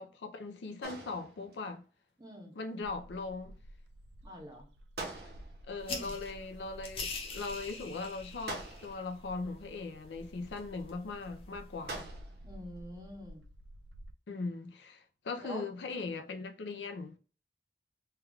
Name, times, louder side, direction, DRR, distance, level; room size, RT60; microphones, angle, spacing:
voice 1, 0.0-1.8 2.5-3.5 5.1-5.3 5.7-12.1 14.3-17.2, left 3 dB, 85° left, 0.5 m, -40 dB
sound 1, 0.8-1.7 5.0-5.8 8.5-9.2 11.9-12.5, right 2 dB, 60° right, 0.8 m, -44 dB
voice 2, 2.2-2.5 4.2-4.7 5.9-6.1 12.4-13.4 15.4-15.6, equal, 20° right, 0.7 m, -45 dB
Bird, 2.8-14.1, equal, 85° right, 0.4 m, -52 dB
sound 2, 5.8-12.0, left 4 dB, 30° left, 0.6 m, -46 dB
3.3 x 2.3 x 3.4 m
head